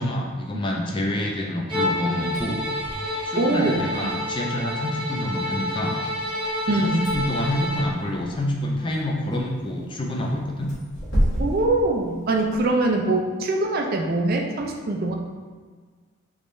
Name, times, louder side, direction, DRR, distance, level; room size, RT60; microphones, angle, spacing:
voice 1, 0.0-2.6 3.2-6.0 6.6-10.7, left 1 dB, 25° left, 0 dB, 0.4 m, -27 dB
Bowed string instrument, 1.7-7.9, left 1 dB, 20° right, 0.9 m, -29 dB
sound 1, 2.2-12.7, equal, 55° left, 1.3 m, -33 dB
voice 2, 3.4-4.1 6.7-7.0 11.4-15.1, right 2 dB, 45° right, 2 dB, 0.4 m, -23 dB
3.5 x 3.2 x 2.5 m, 1.5 s
head